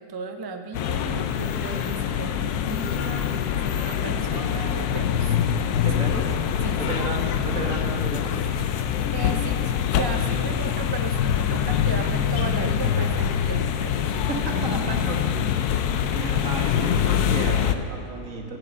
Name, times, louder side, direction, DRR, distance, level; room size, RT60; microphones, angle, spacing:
voice 1, 0.0-5.3 6.6-6.9 9.1-14.3 14.5-15.0 15.3-16.1, right 3 dB, 35° right, 4 dB, 0.4 m, -35 dB
sound 1, 0.7-17.7, left 9 dB, 85° left, 1.2 m, -24 dB
voice 2, 5.8-8.3 14.1-15.2 16.1-18.6, right 3 dB, 55° right, 1 dB, 1.8 m, -33 dB
14.0 x 8.0 x 6.1 m, 2.5 s
omnidirectional pair, 1.6 m